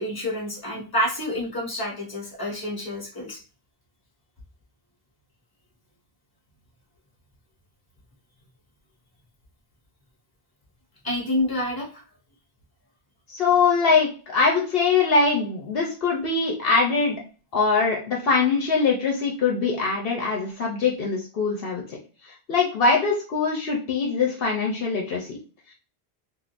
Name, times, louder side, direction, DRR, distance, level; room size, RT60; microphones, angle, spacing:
voice 1, 0.0-3.4 11.0-12.0, left 1 dB, 20° left, -3 dB, 1.2 m, -28 dB
voice 2, 13.3-17.2 17.5-22.0 22.2-25.4, left 4 dB, 70° left, -1 dB, 0.9 m, -22 dB
3.6 x 2.4 x 2.5 m, 0.38 s
omnidirectional pair, 1.0 m